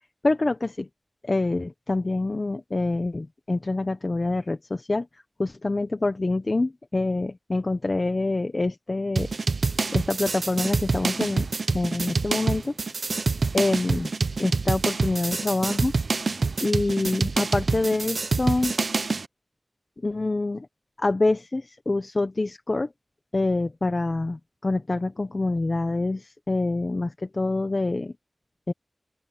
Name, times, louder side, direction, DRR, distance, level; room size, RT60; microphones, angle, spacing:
voice 1, 0.2-0.9 1.2-9.3 9.9-11.5 11.7-12.7 13.5-14.1 14.4-15.9 16.6-18.7 20.0-20.7 21.0-22.9 23.3-28.1 28.7-28.8, left 2 dB, 45° left, 1.0 m, -26 dB
sound 1, 9.2-19.3, right 4 dB, 75° right, 0.8 m, -26 dB
open air
wide cardioid pair, 70°, 0 cm